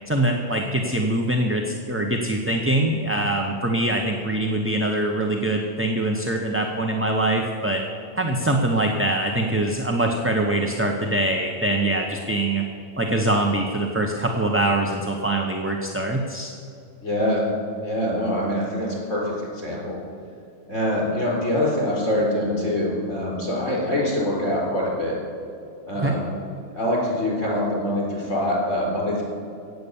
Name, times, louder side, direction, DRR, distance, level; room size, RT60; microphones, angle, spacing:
voice 1, 0.1-7.8 8.2-12.6 13.0-16.5 26.0-26.2, right 1 dB, 15° right, 2 dB, 0.7 m, -23 dB
voice 2, 17.0-17.4 17.8-20.0 20.7-25.2 25.8-26.2 26.7-29.2, left 1 dB, 75° left, -3 dB, 4.4 m, -24 dB
17.5 x 7.9 x 7.1 m, 2.6 s
omnidirectional pair, 1.3 m